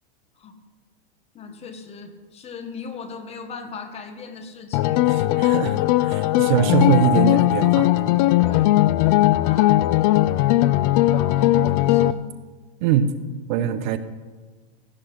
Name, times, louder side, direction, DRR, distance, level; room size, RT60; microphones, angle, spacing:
voice 1, 1.3-5.1 8.0-8.8 9.4-9.8 10.1-12.3 13.5-13.7, left 5 dB, 20° left, 7 dB, 1.3 m, -39 dB
sound 1, 4.7-12.1, left 16 dB, 35° left, 0.5 m, -18 dB
voice 2, 5.1-7.9 12.8-13.1 13.5-14.0, right 9 dB, 50° right, 11 dB, 1.0 m, -22 dB
17.0 x 11.5 x 5.9 m, 1.4 s
hypercardioid pair, 140°, 32 cm